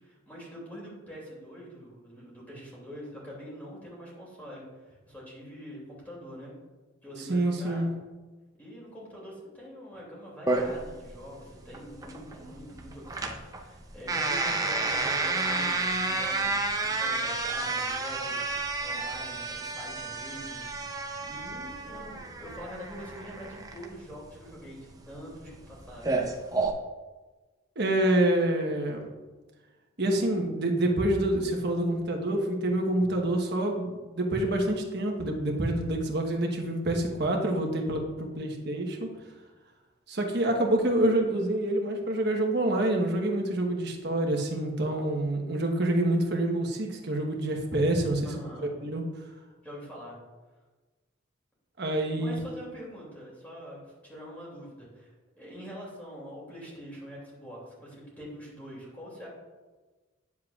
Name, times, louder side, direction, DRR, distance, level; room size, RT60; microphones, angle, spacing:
voice 1, 0.0-6.5 7.0-7.8 8.5-18.4 18.8-20.8 21.2-26.1 48.2-48.8 49.6-50.2 52.2-59.3, equal, 10° left, -6 dB, 2.6 m, -44 dB
voice 2, 7.3-7.9 27.8-29.1 30.0-39.1 40.1-48.3 48.6-49.0 51.8-52.4, right 1 dB, 55° right, 1 dB, 1.2 m, -27 dB
sound 1, 10.5-26.7, right 3 dB, 20° right, 0.6 m, -31 dB
9.6 x 7.4 x 2.4 m, 1.3 s
head